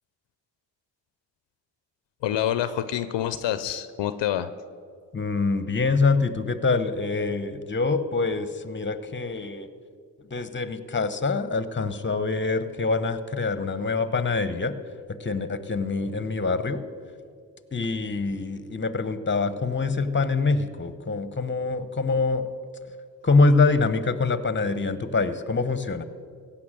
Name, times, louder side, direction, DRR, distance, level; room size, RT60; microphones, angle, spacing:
voice 1, 2.2-4.5, left 11 dB, 70° left, 13 dB, 0.7 m, -27 dB
voice 2, 5.1-9.7 10.3-14.7 15.2-16.8 17.7-22.5 23.2-26.0, left 3 dB, 25° left, 13 dB, 1.0 m, -25 dB
16.0 x 5.8 x 7.5 m, 2.2 s
hypercardioid pair, 40°, 45 cm